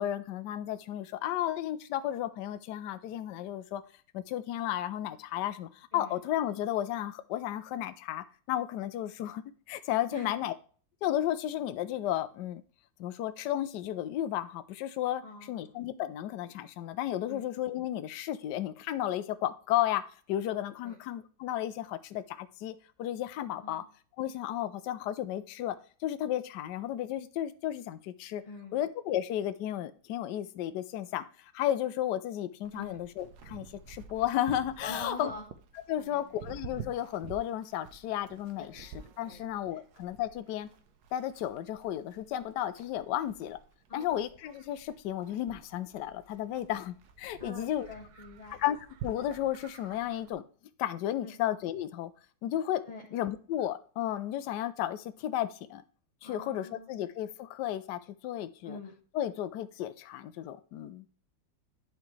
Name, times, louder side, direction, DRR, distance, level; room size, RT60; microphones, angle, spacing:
voice 1, 0.0-3.8 4.1-10.5 11.0-12.6 13.0-20.0 20.3-23.8 24.2-25.8 26.0-28.4 28.7-35.3 35.9-38.9 39.2-40.7 41.1-43.6 43.9-47.9 48.6-48.8 49.0-50.4 50.8-52.1 52.4-52.8 53.1-55.8 56.2-58.8 59.1-61.1, left 12 dB, 70° left, 11 dB, 1.1 m, -33 dB
voice 2, 15.2-15.8 17.3-17.4 20.8-21.0 23.6-23.9 28.5-28.8 32.7-33.0 34.8-35.4 35.9-36.4 39.2-39.4 39.7-39.8 43.9-44.2 47.4-48.6 51.2-51.3 52.9-53.0 56.2-57.0 58.6-58.9, left 2 dB, 20° left, -3 dB, 1.3 m, -44 dB
Livestock farm animals working animals, 32.6-50.3, right 7 dB, 60° right, 1.2 m, -50 dB
11.5 x 4.6 x 3.2 m, 0.42 s
omnidirectional pair, 2.1 m